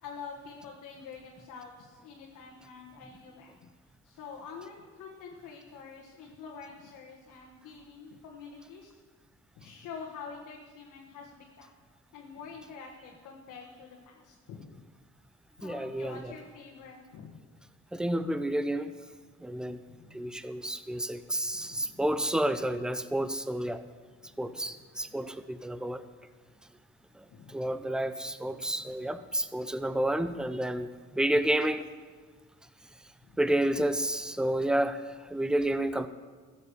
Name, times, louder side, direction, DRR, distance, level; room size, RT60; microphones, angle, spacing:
voice 1, 0.0-3.7 4.0-8.9 9.6-11.7 12.1-14.8 15.6-17.5 19.9-20.3 21.5-22.0 24.2-24.8 25.1-25.2 27.3-27.7 28.4-29.1 33.2-33.4, left 5 dB, 80° left, -1 dB, 1.6 m, -47 dB
voice 2, 15.6-16.3 17.9-18.9 19.4-19.8 20.1-23.8 24.4-26.0 27.2-30.9 31.1-31.9 33.4-36.1, right 1 dB, 5° right, 12 dB, 0.6 m, -30 dB
14.0 x 7.5 x 6.8 m, 1.5 s
cardioid pair, 90°, 30 cm